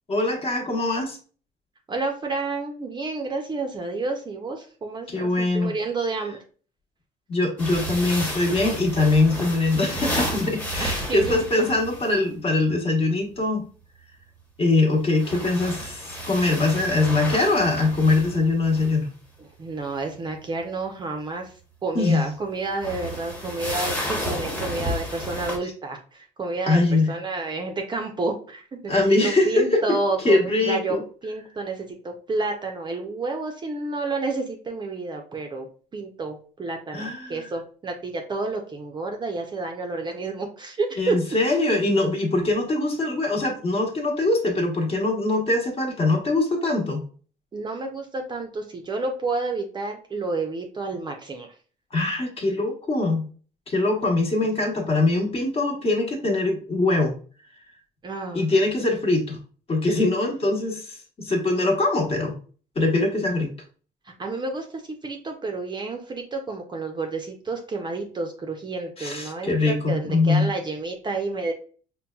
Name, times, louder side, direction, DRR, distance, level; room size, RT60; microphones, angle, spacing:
voice 1, 0.1-1.2 5.1-5.7 7.3-13.6 14.6-19.1 21.9-22.3 26.7-27.1 28.9-29.8 30.2-31.0 36.9-37.5 41.0-47.0 51.9-53.3 53.7-57.1 58.3-59.4 59.7-62.3 62.7-63.5 69.0-70.5, left 2 dB, 35° left, 1 dB, 1.0 m, -22 dB
voice 2, 1.9-6.4 10.8-11.7 19.4-21.5 21.8-31.0 31.2-35.7 35.9-41.2 47.5-51.5 58.0-58.5 64.2-71.5, right 3 dB, 25° right, 3 dB, 0.5 m, -30 dB
sound 1, 7.6-12.1 14.9-19.0 22.7-25.6, equal, 10° left, 0.9 m, -31 dB
5.3 x 2.2 x 2.3 m, 0.41 s
cardioid pair, 110°, 17 cm